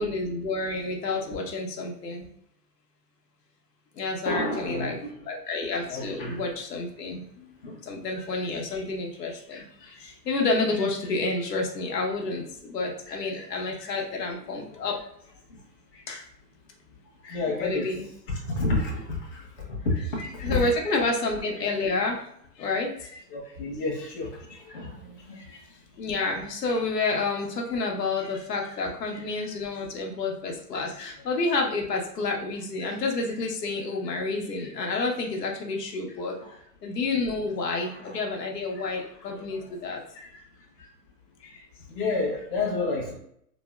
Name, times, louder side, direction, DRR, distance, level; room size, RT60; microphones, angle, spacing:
voice 1, 0.0-2.3 3.9-5.0 5.3-7.5 7.8-15.0 15.9-16.3 17.2-18.1 20.2-22.2 22.6-23.2 25.3-25.6 26.0-36.4 36.8-40.4 41.4-41.6, left 3 dB, 70° left, 1 dB, 1.0 m, -29 dB
voice 2, 4.2-5.2 5.8-6.4 7.6-7.8 8.1-8.2 15.5-15.6 17.3-17.9 18.3-20.7 23.3-25.5 36.4-36.5 37.8-38.2 38.9-39.0 39.3-39.9 41.9-43.1, left 3 dB, 30° left, -3 dB, 0.7 m, -31 dB
4.2 x 2.0 x 2.2 m, 0.71 s
hypercardioid pair, 155°, 49 cm